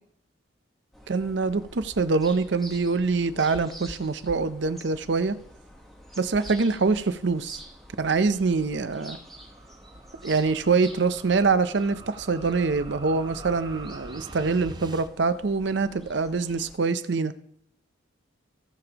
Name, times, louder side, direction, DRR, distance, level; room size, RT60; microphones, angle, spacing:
sound 1, 0.9-16.8, equal, ahead, 1.2 m, -47 dB
voice 1, 1.1-5.4 6.2-7.6 8.0-9.2 10.2-17.3, right 4 dB, 65° right, 13 dB, 0.6 m, -24 dB
sound 2, 7.4-15.1, right 2 dB, 20° right, 0.6 m, -45 dB
17.5 x 6.9 x 2.9 m, 0.70 s
head